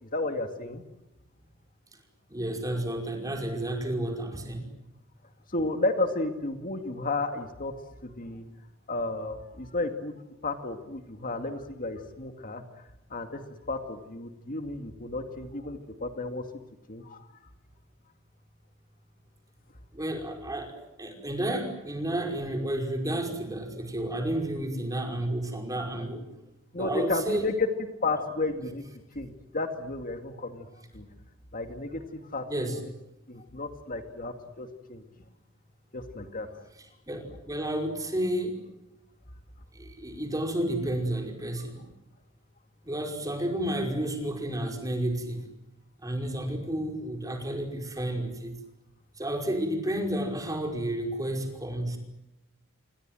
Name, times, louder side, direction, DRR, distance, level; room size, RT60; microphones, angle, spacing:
voice 1, 0.0-0.8 5.5-7.7 8.0-8.4 8.9-10.2 10.4-12.6 13.1-13.4 13.7-16.4 16.9-17.3 26.7-27.7 28.0-28.8 29.1-30.7 30.9-31.1 31.5-32.7 33.3-35.0 35.9-36.6 41.6-41.7, left 2 dB, 40° left, 6 dB, 2.3 m, -32 dB
voice 2, 2.3-4.7 19.9-26.2 26.7-27.5 32.5-32.8 37.1-38.6 39.7-41.9 42.8-45.4 46.0-48.6 49.2-52.0, right 1 dB, 15° right, 3 dB, 5.3 m, -31 dB
29.0 x 24.5 x 7.8 m, 0.92 s
head